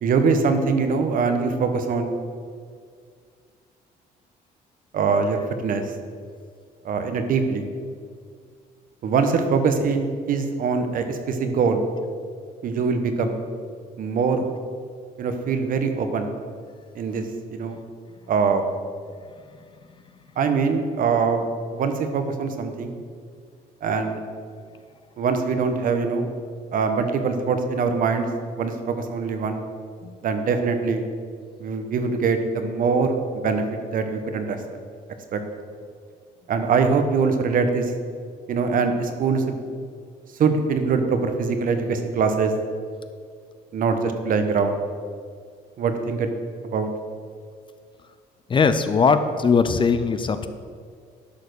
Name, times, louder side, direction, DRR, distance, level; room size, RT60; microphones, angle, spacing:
voice 1, 0.0-2.1 4.9-5.8 6.8-7.6 9.0-11.8 12.6-13.4 14.0-14.5 15.2-16.3 16.9-17.2 17.5-17.8 18.3-18.7 20.4-23.0 23.8-24.2 25.2-26.3 26.7-28.3 28.6-29.6 30.2-31.0 31.6-33.6 33.9-34.6 35.3-35.4 36.5-37.9 38.5-39.6 40.4-42.5 43.7-44.8 45.8-46.3 46.6-46.9, right 5 dB, 55° right, 7 dB, 1.1 m, -23 dB
voice 2, 48.5-50.5, left 5 dB, 30° left, 10 dB, 0.5 m, -20 dB
11.5 x 4.2 x 6.7 m, 2.1 s
cardioid pair, 110°, 17 cm